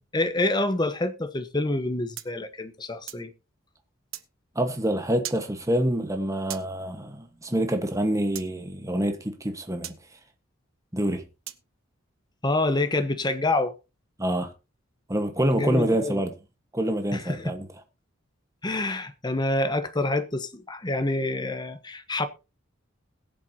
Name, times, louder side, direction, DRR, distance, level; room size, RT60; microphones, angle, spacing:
voice 1, 0.1-3.3 12.4-13.7 15.5-16.2 17.1-17.5 18.6-22.3, left 2 dB, 20° left, 1.0 m, -27 dB
sound 1, 2.2-3.3 4.1-4.3 5.2-5.5 6.5-6.7 8.3-8.5 9.8-10.0 11.5-11.7, right 13 dB, 80° right, 0.8 m, -38 dB
voice 2, 4.5-10.0 10.9-11.2 14.2-14.5 15.1-16.3 16.7-17.7, right 1 dB, 15° right, 1.3 m, -26 dB
21.0 x 7.6 x 2.8 m
head